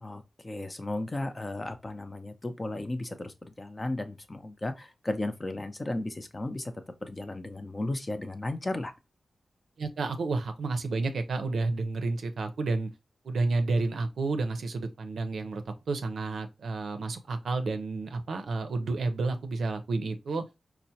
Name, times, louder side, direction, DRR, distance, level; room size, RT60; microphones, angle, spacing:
voice 1, 0.0-6.7 7.0-8.9, left 2 dB, 30° left, 0.6 m, -35 dB
voice 2, 9.8-12.9 13.2-20.4, right 3 dB, 85° right, 0.5 m, -30 dB
4.4 x 2.0 x 2.7 m
cardioid pair, 65°, 0 cm